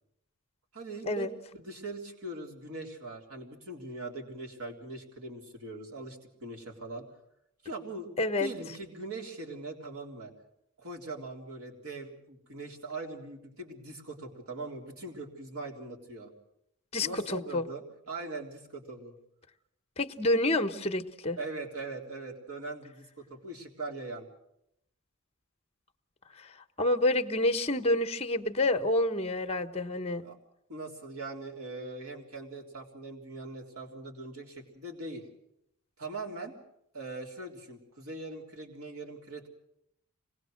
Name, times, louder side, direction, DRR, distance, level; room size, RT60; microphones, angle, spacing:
voice 1, 0.7-7.1 7.6-8.1 8.4-10.3 10.8-16.3 17.0-19.2 21.4-24.3 30.2-30.4 30.7-35.3 36.0-36.5 36.9-39.5, right 2 dB, 70° right, 1 dB, 3.6 m, -41 dB
voice 2, 8.2-8.5 16.9-17.7 20.0-21.4 26.4-30.2, left 2 dB, 25° left, 9 dB, 1.0 m, -28 dB
25.5 x 19.5 x 6.5 m, 0.79 s
head